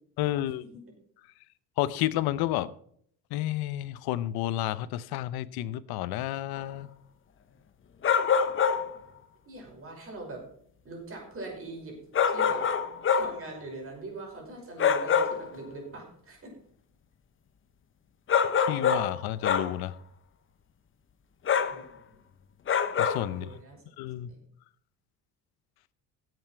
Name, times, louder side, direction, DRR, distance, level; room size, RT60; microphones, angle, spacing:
voice 1, 0.2-0.6 1.8-2.7 3.3-6.9 18.6-19.9 23.0-23.5 24.0-24.3, left 14 dB, 85° left, 0.8 m, -31 dB
sound 1, 6.6-6.7 8.0-9.0 12.1-13.4 14.8-15.5 18.3-19.2 19.4-19.8 21.5-21.8 22.7-23.3, left 7 dB, 35° left, 1.0 m, -25 dB
voice 2, 9.5-10.4 10.8-12.0 12.3-12.7 13.1-16.5 21.7-22.0 23.3-23.8 24.2-24.4, right 2 dB, 35° right, 5.8 m, -42 dB
17.0 x 8.0 x 4.6 m
cardioid pair, 125°, 36 cm